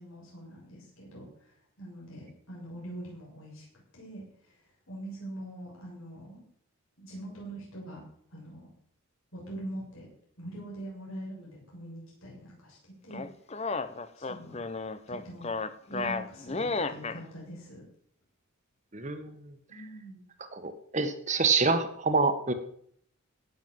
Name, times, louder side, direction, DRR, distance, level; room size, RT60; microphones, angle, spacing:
voice 1, 0.0-3.7 3.9-4.6 4.9-6.4 7.0-8.0 8.3-8.7 9.3-10.1 10.4-13.2 14.2-14.7 15.1-15.5 15.8-17.8 19.7-20.2, right 1 dB, 65° left, -4 dB, 7.1 m, -43 dB
sound 1, 13.1-17.2, left 3 dB, 30° left, 0.8 m, -33 dB
voice 2, 18.9-19.3 20.5-22.5, right 4 dB, 35° right, 8 dB, 1.4 m, -27 dB
17.5 x 7.3 x 7.6 m, 0.65 s
head